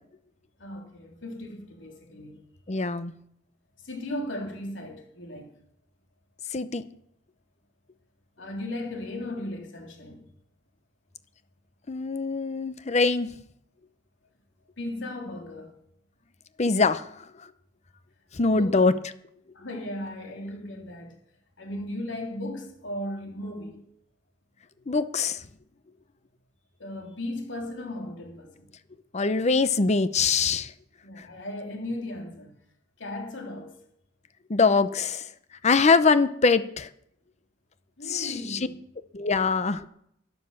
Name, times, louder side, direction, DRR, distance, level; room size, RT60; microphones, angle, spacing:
voice 1, 0.6-2.4 3.8-5.5 8.4-10.3 14.8-15.7 18.5-18.9 19.5-21.2 21.6-23.8 26.8-28.7 31.0-32.6 33.0-33.8 38.0-38.8, left 1 dB, 75° left, 3.4 m, -36 dB
voice 2, 2.7-3.1 6.5-6.8 11.9-13.3 16.6-17.2 18.3-18.9 24.9-25.4 29.1-30.7 31.2-31.3 34.5-35.3 35.6-36.9 38.1-38.6 39.1-39.9, left 4 dB, 35° left, 0.7 m, -23 dB
12.5 x 11.0 x 7.2 m
head